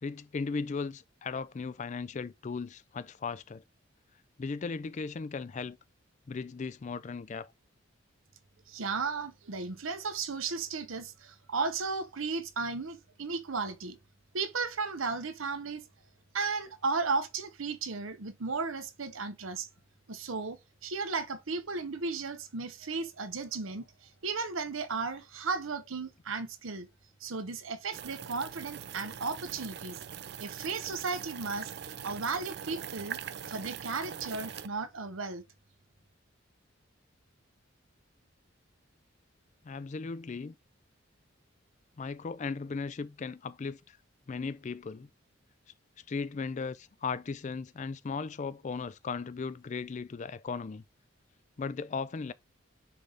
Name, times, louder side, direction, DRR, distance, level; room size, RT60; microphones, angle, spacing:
voice 1, 0.0-3.6 4.4-5.8 6.3-7.5 39.6-40.6 42.0-44.0 44.3-45.1 46.1-50.8 51.6-52.3, left 4 dB, 35° left, 0.4 m, -37 dB
voice 2, 8.7-14.0 14.3-15.8 16.3-19.7 20.1-26.9 27.2-30.0 30.4-33.2 33.5-35.4, right 4 dB, 80° right, 0.9 m, -35 dB
sound 1, 27.9-34.7, right 8 dB, 55° right, 0.5 m, -42 dB
9.8 x 3.4 x 3.9 m
head